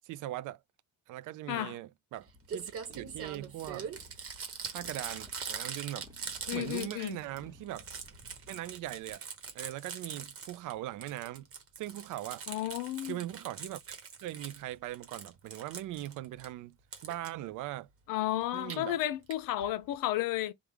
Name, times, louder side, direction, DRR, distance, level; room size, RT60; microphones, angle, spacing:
voice 1, 0.0-0.6 1.1-3.9 4.7-6.1 6.5-7.8 8.5-9.2 9.5-11.5 11.8-12.4 13.0-16.8 17.0-17.9 18.5-19.0, right 14 dB, 70° right, 0.5 m, -40 dB
Crumpling crinkling, 2.2-2.3 2.5-7.4 7.7-10.7 11.0-14.6 14.9-16.5 16.9-17.3 18.4-18.8 19.3-19.4 19.6-19.7 19.9-20.0, right 6 dB, 45° right, 1.1 m, -42 dB
Motorcycle, 2.3-9.1, left 2 dB, 10° right, 1.1 m, -57 dB
voice 2, 6.5-7.2 12.5-13.2 18.1-20.5, left 14 dB, 80° left, 0.7 m, -32 dB
3.6 x 2.4 x 4.5 m
cardioid pair, 150°, 32 cm